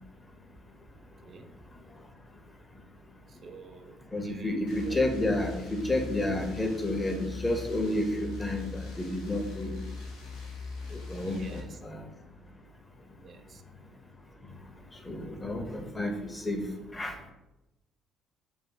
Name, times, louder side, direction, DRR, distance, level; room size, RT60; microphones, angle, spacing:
voice 1, 0.9-1.5 3.3-5.0 11.2-11.8 13.2-13.6, right 5 dB, 45° right, 8 dB, 0.4 m, -49 dB
voice 2, 4.1-9.8 10.9-12.0 15.0-16.6 16.9-17.3, left 1 dB, 20° left, 4 dB, 0.6 m, -31 dB
sound 1, 4.7-11.6, left 3 dB, 80° left, 0.7 m, -41 dB
2.5 x 2.2 x 3.7 m, 0.96 s
hypercardioid pair, 60°, 0 cm